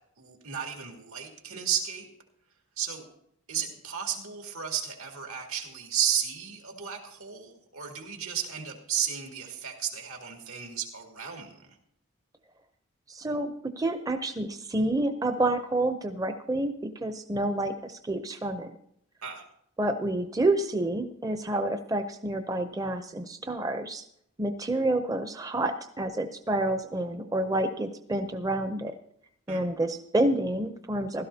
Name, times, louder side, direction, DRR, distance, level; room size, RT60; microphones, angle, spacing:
voice 1, 0.2-2.1 2.8-3.0 3.5-11.5 19.2-19.4 29.5-29.6, right 9 dB, 85° right, 2 dB, 2.4 m, -33 dB
voice 2, 13.1-18.8 19.8-24.0 24.4-28.9 29.5-31.3, right 1 dB, 15° right, 7 dB, 0.5 m, -29 dB
16.5 x 12.5 x 2.8 m, 0.71 s
head